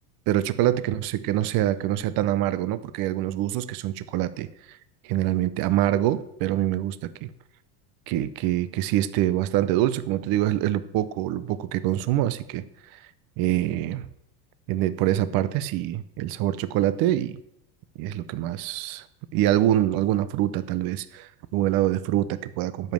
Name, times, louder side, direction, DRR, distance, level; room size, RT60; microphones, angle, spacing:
voice 1, 0.3-4.8 5.0-7.3 8.1-12.6 12.9-13.0 13.4-14.1 14.7-17.4 18.0-19.1 19.3-22.9, right 13 dB, 45° right, 14 dB, 0.7 m, -25 dB
12.0 x 5.4 x 7.5 m, 0.82 s
supercardioid pair, 125°, 48 cm